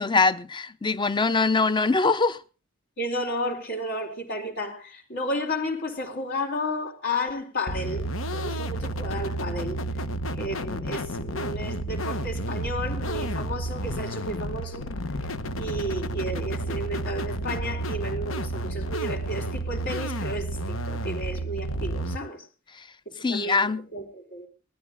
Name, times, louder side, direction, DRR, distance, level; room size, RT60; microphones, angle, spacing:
voice 1, 0.0-2.4 23.2-23.8, left 3 dB, 25° left, 0.7 m, -23 dB
voice 2, 3.0-9.8 10.4-14.9 15.6-22.5 23.1-24.5, left 1 dB, 60° left, 3.8 m, -32 dB
sound 1, 7.7-22.2, right 1 dB, 85° left, 1.1 m, -31 dB
20.0 x 13.0 x 3.8 m
head